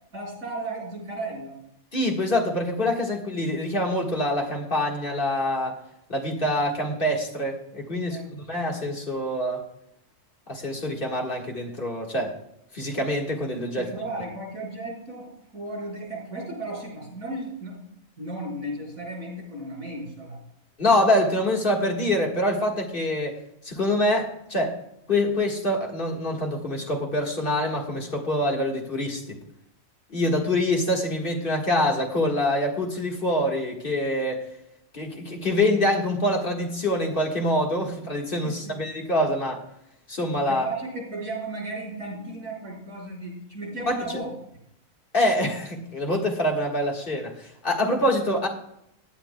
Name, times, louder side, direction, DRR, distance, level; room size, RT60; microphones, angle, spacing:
voice 1, 0.1-1.6 8.0-8.3 13.8-17.8 18.2-20.4 38.4-38.8 40.5-44.3, right 2 dB, 90° right, -2 dB, 5.3 m, -35 dB
voice 2, 1.9-5.8 6.1-9.6 10.5-12.4 12.7-13.9 20.8-23.4 23.6-24.7 25.1-29.4 30.1-34.5 34.9-39.6 40.1-40.7 43.9-44.0 45.1-48.5, left 1 dB, 40° left, 0 dB, 1.8 m, -25 dB
17.5 x 10.5 x 2.2 m, 0.77 s
omnidirectional pair, 1.4 m